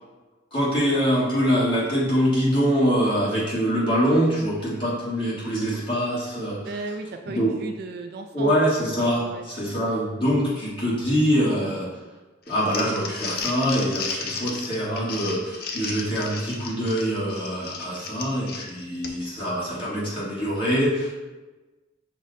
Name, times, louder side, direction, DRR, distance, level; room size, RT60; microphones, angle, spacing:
voice 1, 0.5-6.6 7.2-7.6 8.3-11.9 12.5-21.1, equal, 25° left, -7 dB, 1.4 m, -24 dB
voice 2, 6.6-8.7 9.3-9.4 15.2-15.4, right 3 dB, 55° right, 6 dB, 0.3 m, -35 dB
Crumpling crinkling, 12.5-19.4, left 4 dB, 50° left, 0.5 m, -34 dB
6.1 x 2.2 x 4.0 m, 1.2 s
head